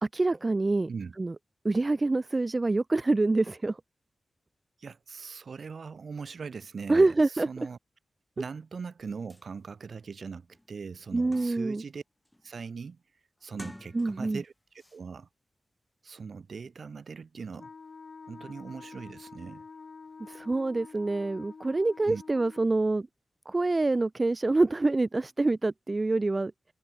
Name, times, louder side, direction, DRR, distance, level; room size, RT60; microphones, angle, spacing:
voice 1, 0.0-0.9 1.2-1.3 1.6-3.8 6.9-7.5 11.1-11.8 13.9-14.4 20.2-23.1 23.5-26.5, right 2 dB, 35° right, 0.8 m, -26 dB
voice 2, 4.8-7.1 7.5-7.8 8.4-12.0 12.4-13.0 13.4-14.5 14.9-15.3 16.0-17.7 18.3-19.7 22.1-22.2, right 5 dB, 65° right, 0.9 m, -40 dB
sound 1, 9.0-9.1 9.3-9.5 10.0-10.1 10.5-11.8 12.2-12.6 13.4-14.4 14.8-15.0, left 1 dB, 10° left, 2.1 m, -49 dB
Wind instrument woodwind instrument, 17.6-22.7, left 4 dB, 60° left, 7.4 m, -48 dB
cardioid pair, 70°, 0 cm